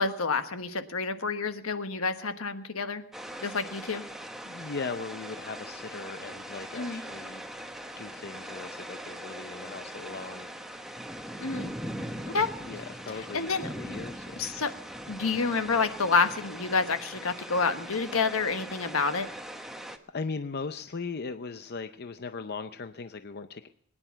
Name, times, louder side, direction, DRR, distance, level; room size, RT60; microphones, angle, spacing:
voice 1, 0.0-3.0 3.4-4.0 6.7-7.0 11.4-11.7 12.2-12.5 13.3-13.7 14.4-14.7 15.1-19.3, left 4 dB, 75° left, 9 dB, 1.3 m, -28 dB
sound 1, 3.1-20.0, equal, ahead, 1.0 m, -41 dB
voice 2, 4.4-7.4 8.0-10.6 12.6-14.4 19.8-23.7, left 4 dB, 50° left, 9 dB, 0.6 m, -38 dB
22.5 x 10.0 x 5.8 m, 0.72 s
head